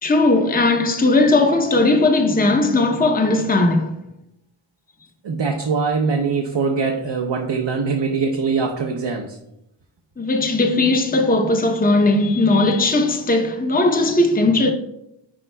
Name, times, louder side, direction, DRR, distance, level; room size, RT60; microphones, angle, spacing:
voice 1, 0.0-4.0 10.2-14.7, left 2 dB, 20° left, 0.7 m, -17 dB
voice 2, 5.2-9.4, right 5 dB, 65° right, 0.7 m, -22 dB
9.9 x 4.4 x 2.2 m
wide cardioid pair, 60°, 46 cm